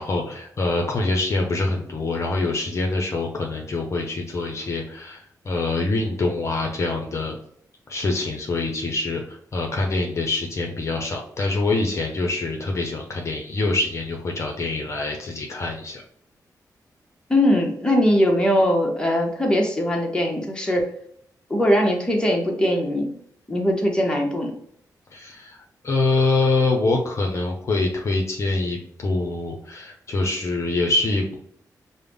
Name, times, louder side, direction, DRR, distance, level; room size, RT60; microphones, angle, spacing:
voice 1, 0.0-7.3 7.9-16.0 25.1-25.6 25.8-31.4, left 2 dB, 45° left, 1 dB, 0.7 m, -25 dB
voice 2, 17.3-20.8 21.5-23.1 23.5-24.5, equal, 15° left, 1 dB, 0.9 m, -20 dB
5.3 x 2.1 x 3.4 m, 0.66 s
cardioid pair, 100°, 7 cm